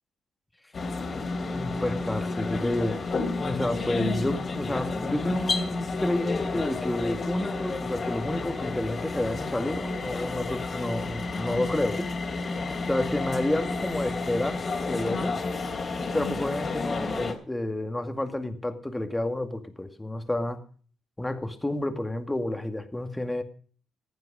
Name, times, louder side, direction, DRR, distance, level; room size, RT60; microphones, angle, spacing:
sound 1, 0.7-17.3, left 3 dB, 40° left, 3.2 m, -31 dB
voice 1, 1.5-3.0 3.4-12.1 12.9-15.4 16.1-20.6 21.2-23.4, left 1 dB, 10° left, 7 dB, 2.2 m, -30 dB
15.5 x 9.6 x 5.1 m, 0.43 s
cardioid pair, 80°, 0 cm